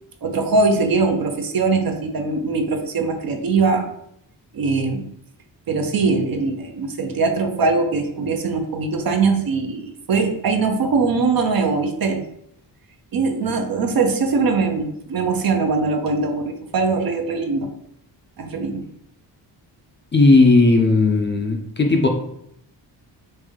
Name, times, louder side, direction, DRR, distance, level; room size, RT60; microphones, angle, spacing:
voice 1, 0.2-3.9 4.5-5.0 5.7-12.2 13.1-17.7 18.4-18.8, right 4 dB, 55° right, 5 dB, 0.6 m, -21 dB
voice 2, 20.1-22.1, left 3 dB, 25° left, 3 dB, 0.5 m, -15 dB
3.3 x 2.6 x 3.6 m, 0.73 s
cardioid pair, 85°, 44 cm